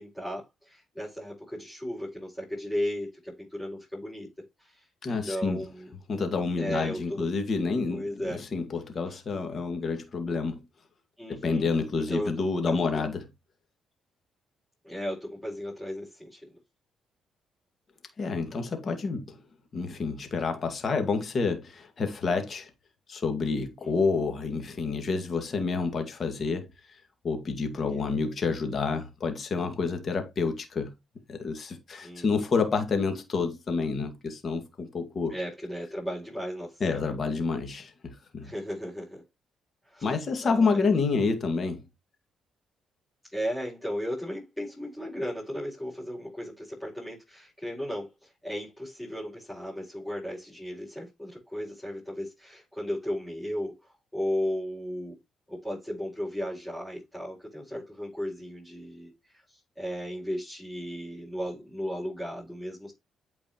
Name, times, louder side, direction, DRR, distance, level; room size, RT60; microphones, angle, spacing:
voice 1, 0.0-4.3 4.6-5.9 6.6-7.3 7.9-8.4 9.1-9.2 11.2-12.3 12.7-13.1 14.8-16.5 23.8-23.9 27.8-28.2 32.0-32.3 35.3-37.0 38.4-39.2 39.8-40.2 40.4-40.9 43.3-55.2 55.5-62.9, equal, 5° left, 5.3 m, -35 dB
voice 2, 5.0-5.6 6.1-10.6 11.3-13.2 18.2-19.4 19.7-22.7 23.1-26.7 27.2-30.9 31.3-35.3 36.8-38.5 40.0-41.8, left 4 dB, 45° left, 2.0 m, -29 dB
8.7 x 4.5 x 2.9 m
cardioid pair, 90°, 0 cm